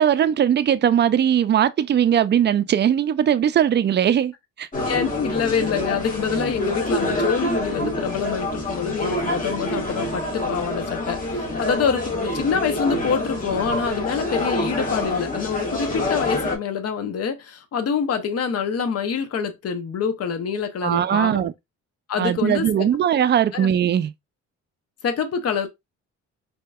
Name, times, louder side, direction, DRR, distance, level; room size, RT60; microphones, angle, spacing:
voice 1, 0.0-4.3 4.6-4.7 20.8-21.5 22.2-24.1, right 9 dB, 35° right, 0.4 m, -19 dB
sound 1, 4.7-16.6, left 1 dB, 25° left, 1.7 m, -26 dB
voice 2, 4.9-21.5 22.1-22.9 23.5-23.7 25.0-25.7, left 6 dB, 55° left, 0.9 m, -26 dB
4.5 x 2.8 x 2.3 m
cardioid pair, 90°, 30 cm